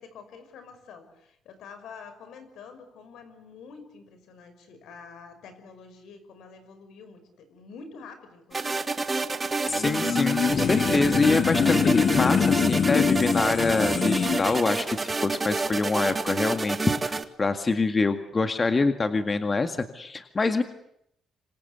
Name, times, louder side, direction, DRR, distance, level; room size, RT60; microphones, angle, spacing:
voice 1, 0.0-8.8, left 5 dB, 80° left, 9 dB, 5.8 m, -47 dB
sound 1, 8.5-17.2, right 3 dB, 25° right, 2.0 m, -29 dB
sound 2, 9.7-14.6, left 7 dB, 55° left, 1.4 m, -24 dB
voice 2, 9.7-20.6, left 3 dB, 30° left, 8 dB, 2.0 m, -25 dB
26.5 x 26.0 x 8.3 m, 0.74 s
cardioid pair, 90°, 0 cm